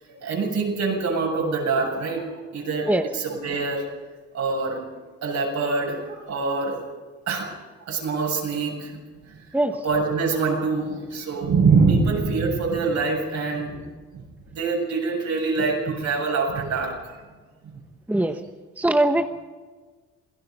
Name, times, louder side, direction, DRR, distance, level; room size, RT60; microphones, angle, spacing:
voice 1, 0.0-3.9 4.3-4.8 5.2-6.8 7.3-7.5 7.9-9.0 9.3-9.4 9.8-13.8 14.1-17.2, right 4 dB, 70° right, 0 dB, 7.7 m, -24 dB
voice 2, 9.5-9.8 18.1-18.4 18.8-19.3, right 1 dB, 5° right, 7 dB, 1.0 m, -21 dB
27.5 x 18.0 x 5.5 m, 1.4 s
cardioid pair, 90°, 30 cm